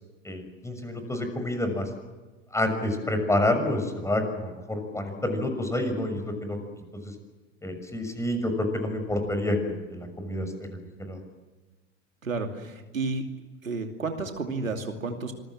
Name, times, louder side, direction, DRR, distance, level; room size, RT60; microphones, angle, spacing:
voice 1, 0.2-1.8 2.5-6.6 7.6-10.5 11.0-11.2, left 1 dB, 5° left, 6 dB, 6.6 m, -28 dB
voice 2, 12.2-13.2 13.6-15.3, right 3 dB, 90° right, 5 dB, 2.8 m, -31 dB
26.5 x 21.5 x 7.5 m, 1.2 s
hypercardioid pair, 85°, 39 cm